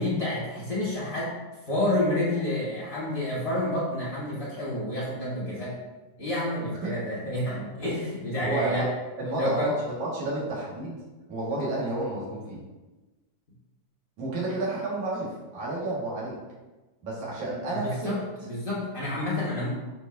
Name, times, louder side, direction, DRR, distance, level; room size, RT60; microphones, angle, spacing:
voice 1, 0.0-1.3 1.7-5.7 6.2-8.9 9.4-9.7 17.7-19.7, left 1 dB, 30° left, -7 dB, 1.1 m, -29 dB
voice 2, 8.4-8.9 9.2-11.0 11.3-12.6 14.2-16.4 17.0-18.1, right 2 dB, 70° right, -6 dB, 3.2 m, -31 dB
9.5 x 4.5 x 2.7 m, 1.2 s
omnidirectional pair, 3.5 m